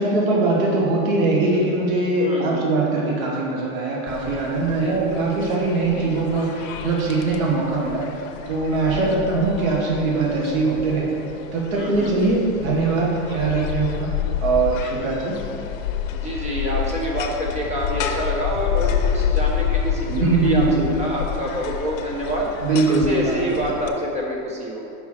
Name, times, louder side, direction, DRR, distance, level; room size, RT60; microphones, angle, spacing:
voice 1, 0.0-8.0 8.5-11.1 11.5-14.1 14.4-15.4 20.1-20.9 22.6-23.7, right 3 dB, 80° right, -3 dB, 1.4 m, -21 dB
voice 2, 2.2-2.6 4.7-5.0 5.9-6.2 8.8-9.2 11.7-12.1 16.1-22.5 22.9-24.9, equal, 15° right, -3 dB, 1.1 m, -27 dB
sound 1, 4.1-23.9, left 8 dB, 70° left, 0.7 m, -29 dB
5.5 x 4.6 x 6.0 m, 2.8 s
supercardioid pair, 150°, 40 cm